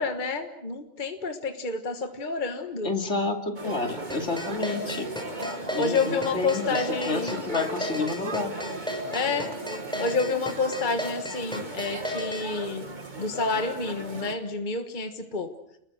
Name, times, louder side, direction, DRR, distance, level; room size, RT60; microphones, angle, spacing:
voice 1, 0.0-2.9 5.8-7.3 9.1-9.5 10.0-12.8 13.2-15.5, left 4 dB, 40° left, 6 dB, 1.6 m, -29 dB
voice 2, 2.8-5.1 5.7-8.5, left 3 dB, 70° left, 4 dB, 3.0 m, -30 dB
sound 1, 3.6-14.3, right 1 dB, 40° right, 2.2 m, -36 dB
sound 2, 4.1-12.4, equal, 5° left, 5.8 m, -34 dB
30.0 x 21.5 x 6.4 m, 0.81 s
omnidirectional pair, 1.3 m